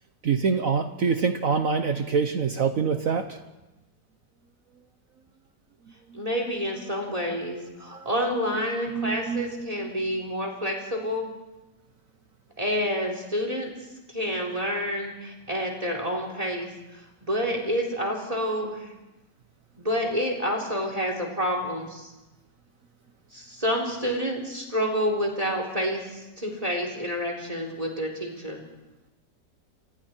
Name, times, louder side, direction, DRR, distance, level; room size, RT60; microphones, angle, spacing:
voice 1, 0.2-3.4 5.9-6.2 7.8-8.1 8.9-9.9, right 5 dB, 55° right, 7 dB, 1.3 m, -26 dB
voice 2, 6.1-11.3 12.6-13.7 14.1-16.7 17.2-18.9 19.8-22.1 23.3-28.6, equal, 20° right, 1 dB, 3.8 m, -28 dB
29.5 x 24.5 x 4.5 m, 1.0 s
omnidirectional pair, 1.9 m